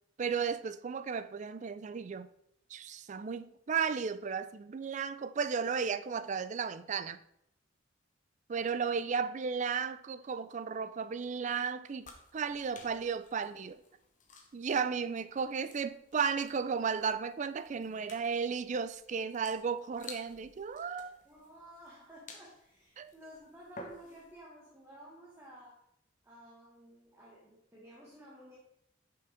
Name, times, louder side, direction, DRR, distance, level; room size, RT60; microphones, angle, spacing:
voice 1, 0.2-2.3 2.7-7.2 8.5-13.8 14.5-21.2 23.0-23.1, right 6 dB, 35° right, 0.4 m, -34 dB
sound 1, 12.0-24.4, left 3 dB, 40° left, 1.1 m, -55 dB
voice 2, 21.2-25.9 26.2-28.6, right 1 dB, 15° right, 1.3 m, -54 dB
6.2 x 5.8 x 4.9 m
head